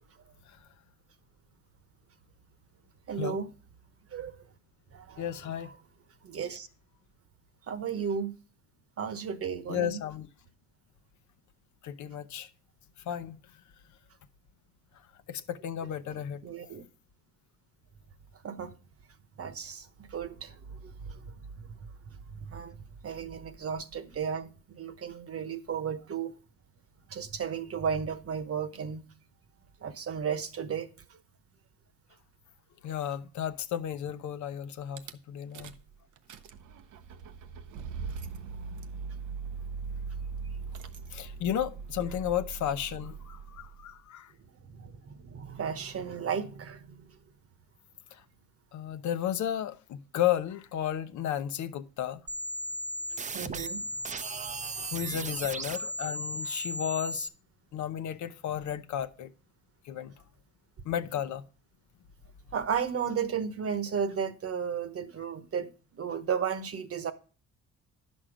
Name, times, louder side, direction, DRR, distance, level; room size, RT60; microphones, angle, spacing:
voice 1, 3.1-3.5 4.1-4.4 4.9-5.2 6.2-6.7 7.7-8.3 9.0-10.0 16.1-16.2 16.4-16.8 18.4-18.7 19.4-21.7 22.3-22.8 23.0-26.3 27.1-29.1 29.8-30.9 44.6-47.0 53.1-53.8 54.4-55.2 62.5-67.1, right 7 dB, 50° right, 1.1 m, -34 dB
voice 2, 5.2-5.7 9.7-10.3 11.8-12.5 13.0-13.4 15.3-16.4 32.8-35.0 35.3-35.7 41.1-44.3 48.1-48.2 48.7-52.2 54.6-57.3 57.7-59.3 59.8-60.1 60.8-61.4, left 10 dB, 70° left, 0.7 m, -33 dB
Rattle / Car / Engine starting, 35.0-35.1 35.5-35.9 36.2-43.9, right 5 dB, 80° right, 0.8 m, -40 dB
key to the dimension next door, 52.3-57.3, right 1 dB, 25° right, 0.6 m, -36 dB
10.0 x 6.3 x 5.0 m
cardioid pair, 90°, 30 cm